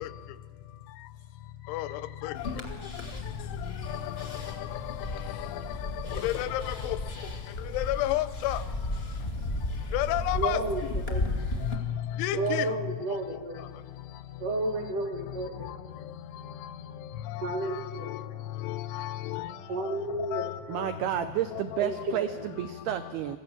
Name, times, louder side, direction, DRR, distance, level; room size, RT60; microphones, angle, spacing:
sound 1, 2.3-11.7, left 2 dB, 30° left, 1.2 m, -35 dB
voice 1, 6.1-6.6 6.9-7.0 7.7-8.6 9.9-10.6 12.2-12.7 18.6-19.5 20.3-20.5, left 15 dB, 85° left, 3.1 m, -29 dB
voice 2, 10.3-10.8 11.1-11.2 12.3-13.7 14.4-15.7 17.4-18.1 19.7-20.5 21.8-22.3, right 2 dB, 50° right, 3.0 m, -31 dB
voice 3, 20.7-23.4, right 11 dB, 85° right, 2.3 m, -31 dB
26.0 x 15.5 x 7.1 m
omnidirectional pair, 5.4 m